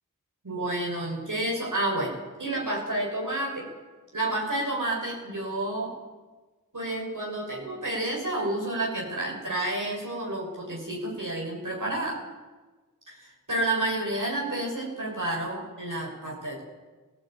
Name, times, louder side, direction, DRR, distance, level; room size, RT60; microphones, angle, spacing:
voice 1, 0.4-3.7 4.1-6.0 6.7-12.2 13.1-16.6, right 1 dB, 65° right, -3 dB, 6.4 m, -30 dB
17.5 x 16.5 x 9.1 m, 1.3 s
wide cardioid pair, 55°, 33 cm